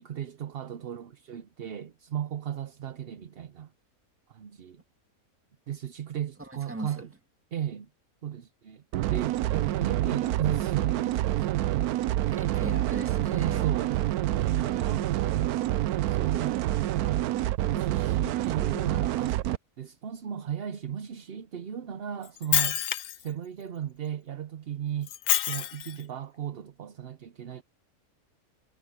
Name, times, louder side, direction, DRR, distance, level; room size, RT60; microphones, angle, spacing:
voice 1, 0.0-3.7 4.3-4.8 5.7-7.1 7.5-7.9 8.2-8.8 9.1-11.9 13.3-14.0 14.6-15.8 16.1-16.6 17.7-19.5 19.8-22.8 23.2-25.1 25.4-27.6, right 9 dB, 50° right, 0.8 m, -36 dB
voice 2, 6.4-7.0 12.3-13.7, right 2 dB, 10° right, 1.6 m, -38 dB
sound 1, 8.9-19.6, right 14 dB, 85° right, 1.1 m, -27 dB
Shatter, 22.2-23.3 25.1-26.0, left 12 dB, 80° left, 1.2 m, -27 dB
omnidirectional pair, 1.6 m